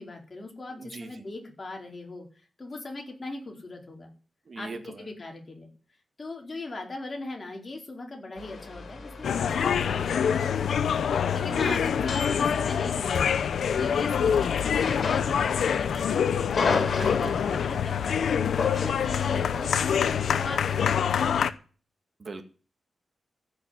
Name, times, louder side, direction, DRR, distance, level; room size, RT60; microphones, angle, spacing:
voice 1, 0.0-4.1 4.5-5.7 6.2-13.3 13.6-18.3 18.8-21.4, left 2 dB, 35° left, 1 dB, 4.4 m, -40 dB
voice 2, 0.8-1.1 4.5-5.0 11.5-11.8 17.0-17.3 18.4-18.5 22.2-22.4, right 4 dB, 50° right, 6 dB, 2.2 m, -39 dB
sound 1, 8.4-13.4 14.5-15.8 16.1-17.8 18.6-19.1, left 4 dB, 60° left, 4.7 m, -33 dB
sound 2, 9.2-21.5, left 7 dB, 85° left, 0.8 m, -25 dB
15.0 x 6.5 x 9.8 m, 0.38 s
wide cardioid pair, 105°, 0 cm